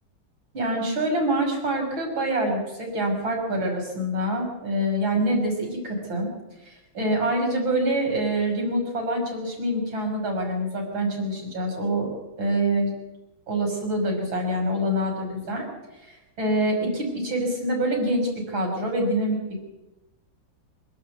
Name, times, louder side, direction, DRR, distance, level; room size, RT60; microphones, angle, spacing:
voice 1, 0.5-6.3 6.7-12.1 12.4-12.9 13.5-15.7 16.1-19.6, right 1 dB, 85° right, 2 dB, 6.7 m, -25 dB
26.5 x 12.5 x 8.4 m, 1.0 s
omnidirectional pair, 2.1 m